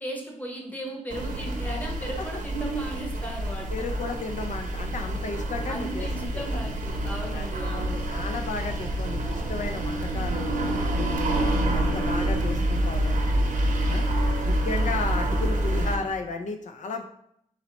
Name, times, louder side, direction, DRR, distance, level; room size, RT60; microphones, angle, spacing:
voice 1, 0.0-3.9 5.7-8.0, right 1 dB, 10° left, 0 dB, 0.9 m, -36 dB
sound 1, 1.1-16.0, right 1 dB, 85° right, 0.7 m, -27 dB
voice 2, 3.7-6.5 7.3-7.5 8.1-10.5 11.0-13.5 13.9-14.1 14.4-17.0, left 4 dB, 70° left, 5 dB, 0.4 m, -34 dB
4.1 x 4.1 x 2.9 m, 0.72 s
wide cardioid pair, 150°, 13 cm